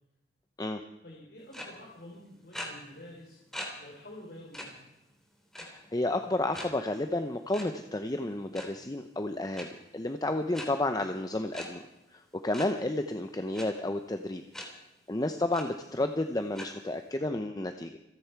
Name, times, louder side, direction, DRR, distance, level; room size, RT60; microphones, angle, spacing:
voice 1, 1.0-3.4 3.8-4.8, left 1 dB, 60° left, -3 dB, 4.0 m, -48 dB
sound 1, 1.5-1.7 2.5-2.7 3.5-3.7 4.1-4.2 4.5-4.7 5.5-5.9 6.5-6.7 7.5-7.6 8.4-8.7 9.5-9.7 10.5-10.7 11.5-11.7 12.5-12.7 13.5-13.7 14.5-14.7 15.1-15.2 15.5-15.6 16.5-16.7, left 1 dB, ahead, 3.0 m, -39 dB
voice 2, 5.6-11.8 12.1-14.4 15.1-18.0, left 2 dB, 20° left, 7 dB, 0.7 m, -31 dB
27.5 x 10.5 x 4.6 m, 0.96 s
head